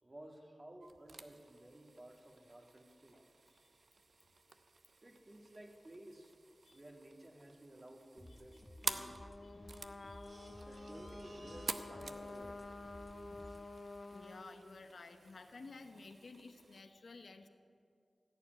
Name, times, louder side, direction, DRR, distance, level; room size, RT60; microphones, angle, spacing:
voice 1, 0.0-3.3 5.0-6.3 6.7-9.3 10.6-12.7, right 1 dB, 40° right, 2 dB, 2.0 m, -55 dB
sound 1, 0.8-16.8, right 3 dB, 70° right, 0.7 m, -50 dB
sound 2, 8.2-13.6, left 1 dB, 20° left, 1.0 m, -56 dB
Trumpet, 8.8-14.5, left 2 dB, 55° left, 0.9 m, -50 dB
voice 2, 9.4-10.6 14.1-17.5, left 3 dB, 80° left, 7 dB, 0.9 m, -54 dB
15.5 x 7.1 x 9.4 m, 2.3 s
cardioid pair, 40°, 0 cm